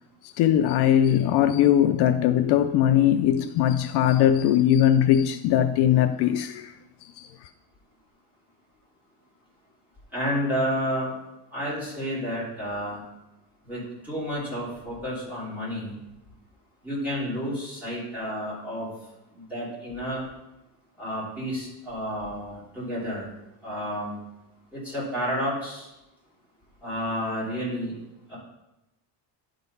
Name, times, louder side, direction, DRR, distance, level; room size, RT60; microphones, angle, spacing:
voice 1, 0.2-6.7 7.2-7.3, left 10 dB, 65° left, 0.5 m, -20 dB
voice 2, 10.1-11.1 11.5-13.0 13.6-15.9 16.8-18.9 19.3-20.2 21.0-23.3 23.6-24.2 24.7-25.9 26.8-27.9 28.3-28.4, equal, 5° right, 3.4 m, -30 dB
11.0 x 3.9 x 5.4 m
cardioid pair, 180°, 42 cm